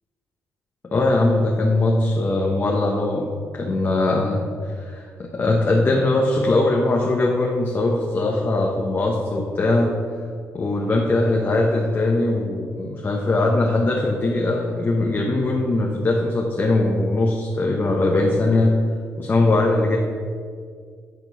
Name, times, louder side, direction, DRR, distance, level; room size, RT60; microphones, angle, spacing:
voice 1, 0.9-4.4 4.7-9.9 10.5-18.8 19.2-20.0, left 2 dB, 40° left, -1 dB, 1.0 m, -21 dB
8.5 x 4.4 x 5.5 m, 2.1 s
cardioid pair, 75°, 6 cm